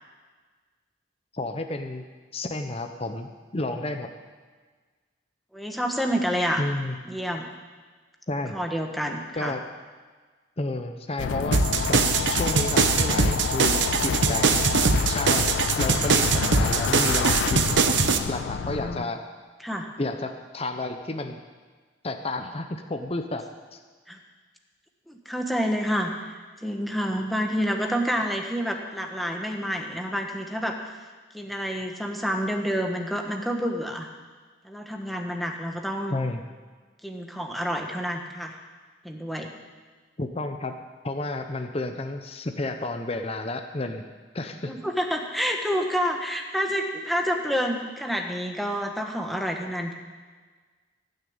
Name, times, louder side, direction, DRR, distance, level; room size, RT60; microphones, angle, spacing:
voice 1, 1.3-2.0 2.3-4.1 6.6-7.0 8.3-8.6 9.3-9.6 10.6-11.6 11.9-12.0 12.3-14.6 15.1-18.0 18.3-19.2 20.0-21.4 22.0-23.4 23.7-23.8 36.1-36.4 40.2-40.8 41.0-44.1 44.3-44.7, left 2 dB, 30° left, 6 dB, 0.8 m, -31 dB
voice 2, 5.5-6.6 7.0-7.5 8.5-9.5 18.6-19.1 19.6-19.9 24.1-24.2 25.1-30.7 31.3-34.1 34.6-36.2 37.0-38.6 39.0-39.5 44.7-49.9, equal, ahead, 2 dB, 1.3 m, -28 dB
sound 1, 11.2-19.0, left 7 dB, 75° left, 0.3 m, -28 dB
sound 2, 11.5-18.2, right 5 dB, 75° right, 0.9 m, -22 dB
16.0 x 6.7 x 8.8 m, 1.4 s
head